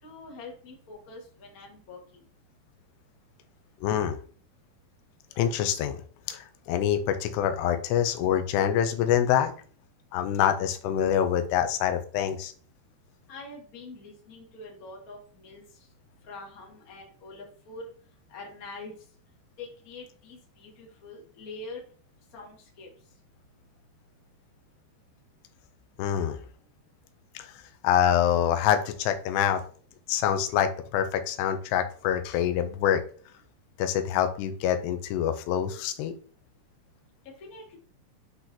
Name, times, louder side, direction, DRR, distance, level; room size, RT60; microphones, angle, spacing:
voice 1, 0.0-2.0 13.3-15.6 16.2-17.9 18.3-18.9 19.6-21.8 22.3-22.9 37.4-37.7, left 3 dB, 40° left, -2 dB, 1.2 m, -44 dB
voice 2, 3.8-4.2 5.4-6.0 6.3-9.5 10.1-12.5 26.0-26.4 27.4-27.5 27.8-29.6 30.1-33.0 33.8-36.1, left 9 dB, 90° left, 8 dB, 2.8 m, -25 dB
10.0 x 4.0 x 2.9 m, 0.43 s
omnidirectional pair, 4.8 m